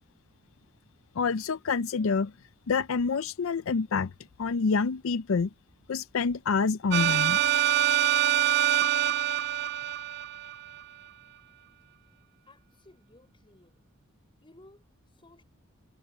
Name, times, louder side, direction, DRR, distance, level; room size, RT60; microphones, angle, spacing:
voice 1, 1.1-2.3 2.7-4.1 4.4-5.5 5.9-7.4, left 5 dB, 70° left, 0.5 m, -27 dB
sound 1, 6.9-10.8, right 12 dB, 50° right, 0.3 m, -25 dB
voice 2, 12.5-13.8 14.4-15.4, left 2 dB, 25° left, 5.4 m, -57 dB
head